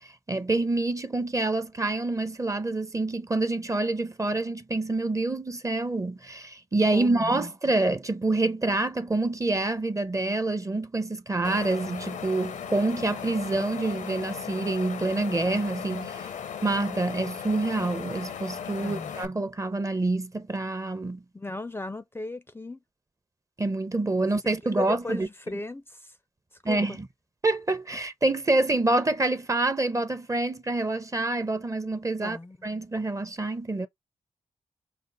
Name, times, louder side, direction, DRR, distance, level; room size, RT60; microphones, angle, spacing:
voice 1, 0.3-16.3 16.6-21.2 23.6-25.3 26.6-27.1 27.4-32.4 32.6-33.9, right 2 dB, 25° right, 0.7 m, -27 dB
voice 2, 6.9-7.5 18.8-19.1 21.3-22.8 24.6-26.1 26.7-27.0 32.2-32.6, left 2 dB, 20° left, 0.5 m, -36 dB
Wind, 11.4-19.3, left 7 dB, 85° left, 0.7 m, -37 dB
5.2 x 2.1 x 3.9 m
cardioid pair, 60°, 13 cm